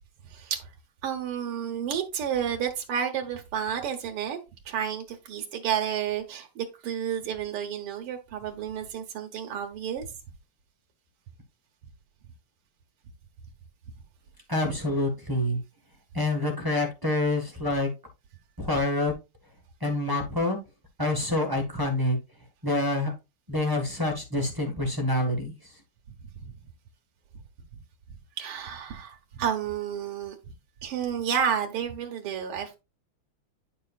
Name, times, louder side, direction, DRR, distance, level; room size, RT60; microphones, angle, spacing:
voice 1, 0.3-0.7 1.0-4.4 4.7-10.1 26.4-26.5 28.4-30.4 30.8-32.8, right 8 dB, 85° right, 2.0 m, -31 dB
voice 2, 14.5-15.6 16.1-17.9 18.6-19.1 19.8-20.6 21.0-22.2 22.6-23.1 23.5-25.5, left 1 dB, 10° right, 1.2 m, -26 dB
10.0 x 5.5 x 2.4 m
omnidirectional pair, 2.4 m